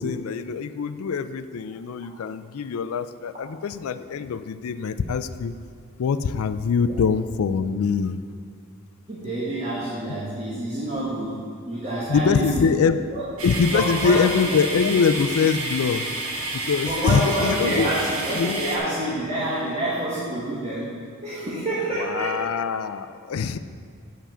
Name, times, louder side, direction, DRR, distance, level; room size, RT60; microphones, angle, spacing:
voice 1, 0.0-5.5 6.0-8.2 12.1-13.0 13.4-16.0 16.5-17.9 18.3-18.6 21.9-23.6, left 5 dB, 85° left, 11 dB, 0.4 m, -23 dB
voice 2, 9.1-11.4 11.7-12.7 13.1-13.3 13.7-14.4 16.8-20.9 21.2-22.4, right 1 dB, 30° right, -8 dB, 1.5 m, -27 dB
sound 1, 13.4-18.8, right 2 dB, 80° right, 1.4 m, -30 dB
8.6 x 5.7 x 6.1 m, 2.2 s
head